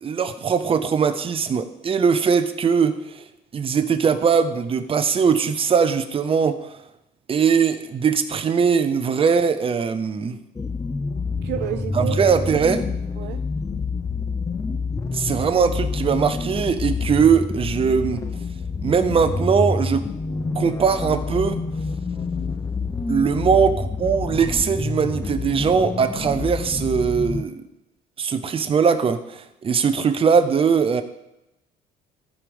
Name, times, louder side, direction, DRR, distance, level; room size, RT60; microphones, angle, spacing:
voice 1, 0.0-3.2 3.5-6.7 7.3-10.4 11.9-12.8 15.1-18.2 18.8-20.1 20.6-21.6 23.1-27.6 28.2-31.0, right 6 dB, 35° right, 0.8 m, -20 dB
sound 1, 10.6-27.4, left 4 dB, 20° left, 0.6 m, -27 dB
voice 2, 11.4-12.2 13.2-13.4, right 11 dB, 80° right, 0.6 m, -29 dB
13.5 x 5.0 x 5.4 m
cardioid pair, 110°, 17 cm